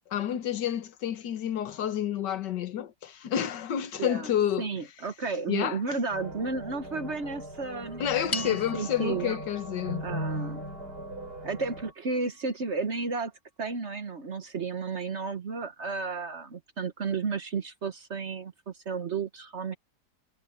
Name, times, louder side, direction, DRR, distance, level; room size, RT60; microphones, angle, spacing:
voice 1, 0.1-4.7 5.5-6.0 8.0-10.0, left 10 dB, 85° left, 1.7 m, -29 dB
voice 2, 4.0-4.3 4.6-9.4 10.0-10.6 11.4-13.3 13.6-19.8, right 4 dB, 45° right, 1.3 m, -33 dB
sound 1, 6.1-11.9, right 1 dB, 65° right, 8.4 m, -38 dB
sound 2, 8.3-12.8, left 2 dB, 30° left, 2.5 m, -42 dB
omnidirectional pair, 1.8 m